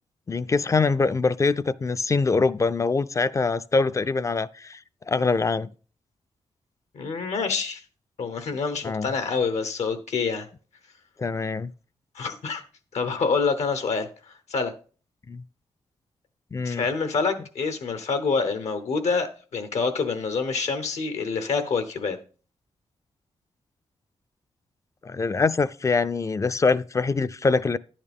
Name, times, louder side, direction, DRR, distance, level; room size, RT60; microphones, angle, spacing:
voice 1, 0.3-4.8 5.1-5.7 8.8-9.1 11.2-11.7 15.3-15.4 16.5-16.9 25.0-27.8, left 4 dB, 30° left, 0.3 m, -24 dB
voice 2, 6.9-7.8 8.2-10.5 12.1-12.6 12.9-14.7 16.6-22.2, left 4 dB, 80° left, 1.0 m, -27 dB
10.5 x 8.8 x 3.5 m
cardioid pair, 90°, 11 cm